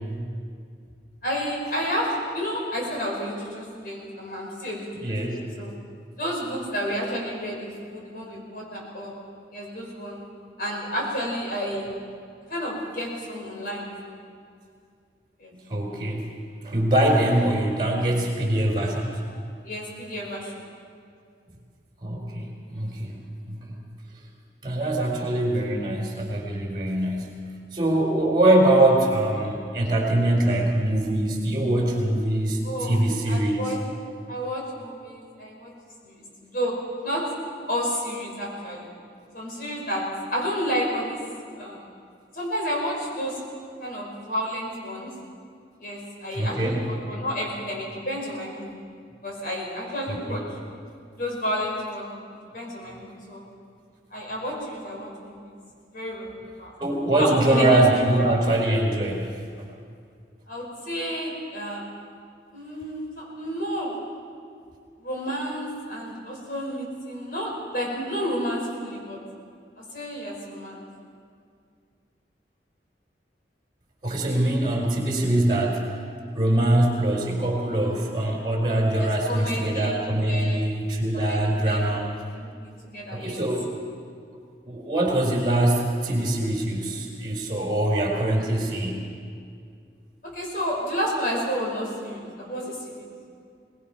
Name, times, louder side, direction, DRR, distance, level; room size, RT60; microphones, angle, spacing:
voice 1, 1.2-5.7 6.2-9.1 9.5-10.2 10.6-11.9 12.5-14.2 15.4-15.5 19.6-20.6 32.6-33.8 34.3-35.7 36.0-36.2 36.4-36.7 37.0-37.2 37.7-38.9 39.3-40.0 40.3-41.2 41.6-41.9 42.3-43.4 43.8-45.1 45.8-48.7 49.2-50.4 51.1-53.4 54.1-55.5 55.9-56.7 57.1-58.3 60.5-61.9 62.5-63.9 65.0-69.2 69.8-70.9 78.9-80.6 81.1-81.9 82.3-83.4 90.2-93.1, equal, 50° left, -2 dB, 5.6 m, -31 dB
voice 2, 5.0-5.4 15.7-16.2 16.6-19.2 22.0-23.1 23.5-23.8 24.6-27.4 27.7-33.7 46.3-46.8 50.1-50.4 56.8-59.3 74.0-75.8 76.3-82.1 83.1-83.7 84.6-89.1, right 1 dB, 25° right, 0 dB, 4.3 m, -23 dB
22.5 x 20.5 x 5.9 m, 2.3 s
head